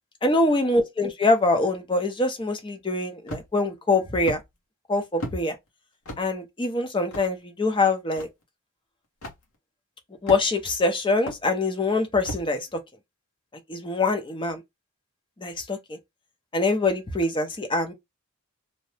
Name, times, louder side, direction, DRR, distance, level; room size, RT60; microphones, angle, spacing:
voice 1, 0.2-4.4 4.9-5.5 6.2-8.3 10.2-12.6 13.7-14.6 15.4-16.0 16.5-17.9, left 2 dB, 25° left, 0.6 m, -24 dB
sound 1, 3.3-3.7 4.3-4.4 5.2-5.4 6.0-6.2 7.1-7.3 8.2-8.3 9.2-9.4 10.3-10.7 11.3-11.4 12.2-12.5, equal, 85° left, 1.1 m, -34 dB
2.7 x 2.1 x 3.2 m
head